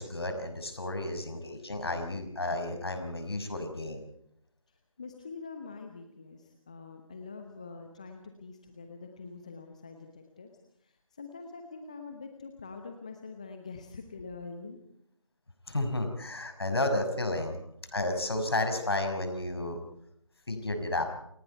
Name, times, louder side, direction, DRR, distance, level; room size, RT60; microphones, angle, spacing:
voice 1, 0.0-4.0 15.7-17.6 17.9-19.8 20.5-21.0, left 2 dB, 45° left, 6 dB, 6.0 m, -32 dB
voice 2, 5.0-10.5 10.8-14.8, left 4 dB, 10° left, 5 dB, 1.0 m, -45 dB
29.0 x 24.0 x 4.6 m, 0.73 s
figure-of-eight pair, 165°, 17 cm